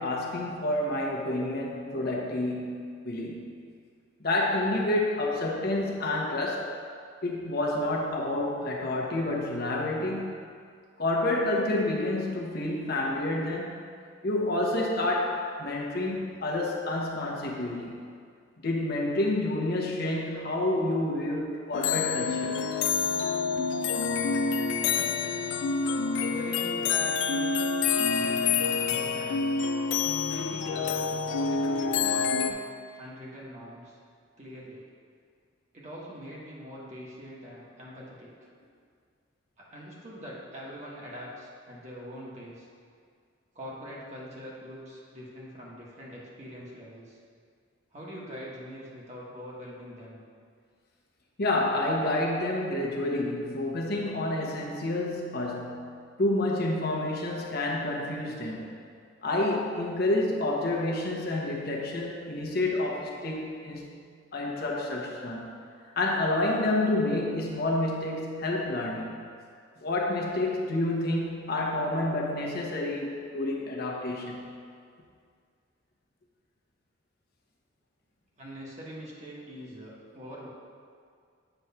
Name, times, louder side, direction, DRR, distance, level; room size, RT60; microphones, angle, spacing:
voice 1, 0.0-3.5 4.2-6.7 7.2-10.3 11.0-13.8 14.2-18.0 18.6-22.6 51.4-55.9 56.2-58.7 59.2-64.0 64.3-65.5 66.0-69.1 69.8-74.6, left 1 dB, 55° left, -2 dB, 0.8 m, -29 dB
sound 1, 21.7-32.5, left 5 dB, 70° left, 0.3 m, -27 dB
voice 2, 26.1-27.5 28.1-29.5 30.3-32.7 33.0-34.0 34.4-34.8 35.7-38.3 39.6-42.7 43.5-47.2 47.9-50.2 78.4-80.5, equal, 35° right, -5 dB, 1.3 m, -43 dB
7.9 x 3.1 x 5.6 m, 2.2 s
head